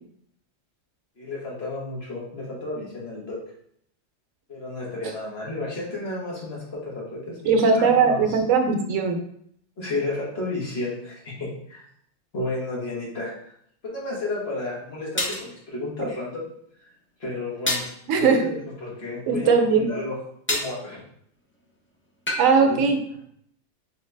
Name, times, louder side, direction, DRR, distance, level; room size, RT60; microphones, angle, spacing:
voice 1, 1.2-3.4 4.5-8.4 9.8-11.8 12.3-13.5 13.8-16.4 17.2-20.2 20.5-21.0 22.5-22.9, left 2 dB, 55° left, -5 dB, 1.5 m, -32 dB
voice 2, 7.4-9.2 18.1-18.5 19.3-19.9 22.4-23.0, right 5 dB, 90° right, 4 dB, 1.0 m, -19 dB
sound 1, 14.1-14.2 15.2-15.5 17.7-18.0 20.5-20.8 22.3-22.5, left 1 dB, 15° left, 0.4 m, -26 dB
4.2 x 3.2 x 3.3 m, 0.69 s
omnidirectional pair, 1.3 m